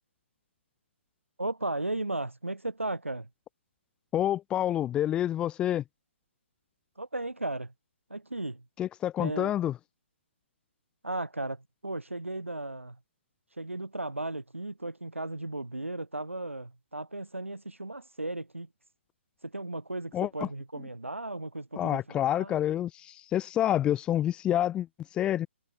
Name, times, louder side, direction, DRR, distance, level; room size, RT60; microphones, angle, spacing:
voice 1, 1.4-3.3 7.0-7.7 8.1-8.6 9.2-9.5 11.0-13.0 13.6-18.7 19.4-22.6, right 2 dB, 80° right, 4.7 m, -35 dB
voice 2, 4.1-5.8 8.8-9.7 20.1-20.5 21.8-24.9 25.1-25.5, left 11 dB, 15° left, 1.2 m, -28 dB
figure-of-eight pair, 135°, 7 cm